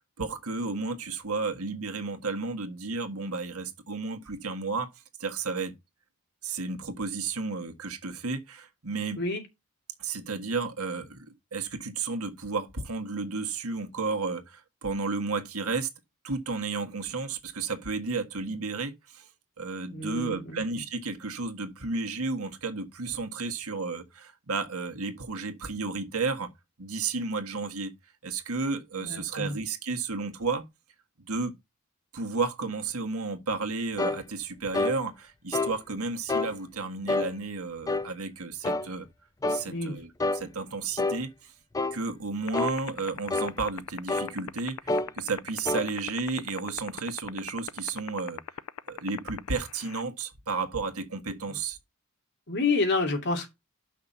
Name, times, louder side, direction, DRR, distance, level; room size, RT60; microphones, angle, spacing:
voice 1, 0.2-4.9 5.2-5.7 6.4-9.2 10.0-15.9 16.2-19.3 19.6-26.5 26.8-27.9 28.2-30.6 31.2-31.5 32.1-39.1 39.5-41.5 41.9-44.8 45.1-48.4 48.9-51.8, right 4 dB, 85° right, 1.6 m, -32 dB
voice 2, 19.9-20.6 28.9-29.6 39.6-40.0 51.5-51.6 52.5-53.5, left 3 dB, 55° left, 2.7 m, -29 dB
sound 1, 34.0-34.2 34.7-35.0 35.5-35.8 36.3-36.5 37.1-37.3 37.9-38.1 38.6-38.9 39.4-39.7 40.2-40.4 41.0-41.2 41.7-42.0 42.5-42.8 43.3-43.5 44.1-44.3 44.9-45.1 45.7-45.9, left 3 dB, 15° left, 0.4 m, -27 dB
sound 2, 42.5-50.0, left 9 dB, 75° left, 0.4 m, -35 dB
5.9 x 5.8 x 6.8 m
head